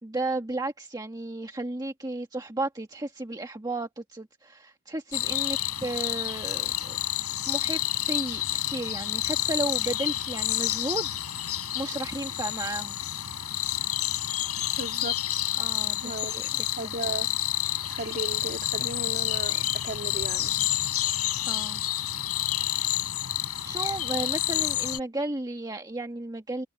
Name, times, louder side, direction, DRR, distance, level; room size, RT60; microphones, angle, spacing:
voice 1, 0.0-7.0 7.5-13.0 15.6-16.4 16.8-16.9 21.5-21.8 23.6-26.7, right 2 dB, 20° right, 1.5 m, -34 dB
sound 1, 5.1-25.0, left 13 dB, 85° left, 6.8 m, -29 dB
voice 2, 14.8-15.2 16.0-16.4 16.8-17.3 17.9-20.5, right 2 dB, 40° right, 3.2 m, -35 dB
head